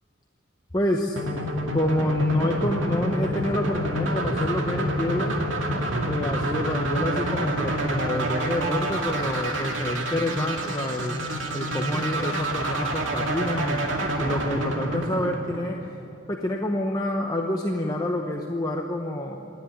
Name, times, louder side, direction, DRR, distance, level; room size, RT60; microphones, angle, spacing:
voice 1, 0.7-1.2 1.7-5.3 6.0-11.2 11.5-13.8 14.2-15.8 16.3-19.5, left 1 dB, 20° left, 1 dB, 0.9 m, -27 dB
sound 1, 1.2-16.1, right 1 dB, 65° right, 2.3 m, -28 dB
27.0 x 10.5 x 9.8 m, 2.9 s
head